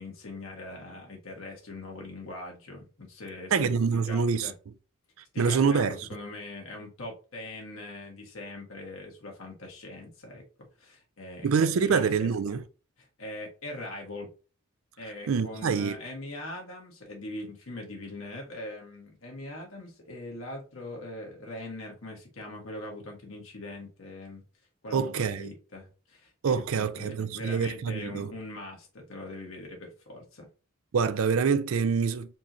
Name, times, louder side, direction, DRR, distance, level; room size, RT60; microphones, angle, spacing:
voice 1, 0.0-3.7 4.1-4.5 5.3-10.4 10.8-12.3 13.0-14.3 15.0-24.4 24.8-30.5, left 2 dB, 75° left, 1.5 m, -41 dB
voice 2, 3.5-4.5 5.4-6.1 11.4-12.6 15.3-16.0 24.9-25.5 26.4-28.3 30.9-32.4, right 5 dB, 75° right, 0.4 m, -26 dB
4.4 x 3.1 x 2.7 m
head